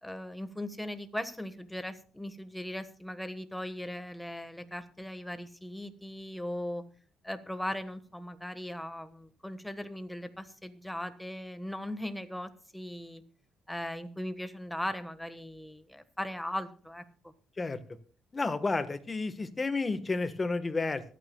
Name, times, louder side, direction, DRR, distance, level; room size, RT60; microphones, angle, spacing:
voice 1, 0.0-6.8 7.2-13.2 13.7-17.3, left 1 dB, 5° left, 10 dB, 1.3 m, -38 dB
voice 2, 18.3-21.0, left 3 dB, 25° left, 11 dB, 1.2 m, -31 dB
23.0 x 9.2 x 2.3 m, 0.43 s
cardioid pair, 90°, 0 cm